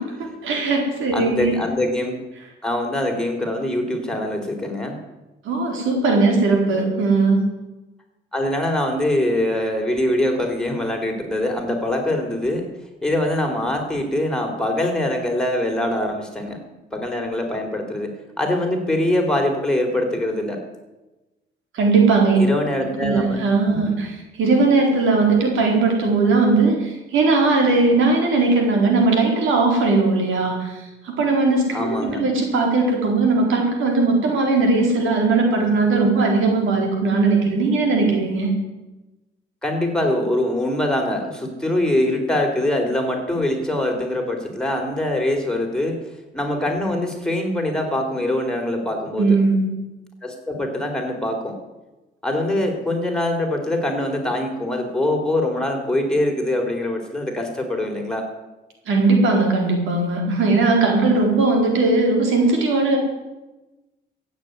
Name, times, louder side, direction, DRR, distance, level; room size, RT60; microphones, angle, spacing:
voice 1, 0.0-1.5 5.4-7.4 21.7-22.4 22.8-38.5 49.2-49.7 58.9-63.0, right 3 dB, 80° right, 1 dB, 4.3 m, -19 dB
voice 2, 1.1-2.2 2.6-5.0 8.3-12.7 13.0-16.6 16.9-20.6 22.3-23.4 23.7-24.0 31.7-32.2 39.6-46.0 46.3-49.4 50.2-51.6 52.2-58.3, left 1 dB, 5° left, 1 dB, 4.0 m, -23 dB
15.0 x 8.3 x 9.5 m, 1.1 s
cardioid pair, 90°, 20 cm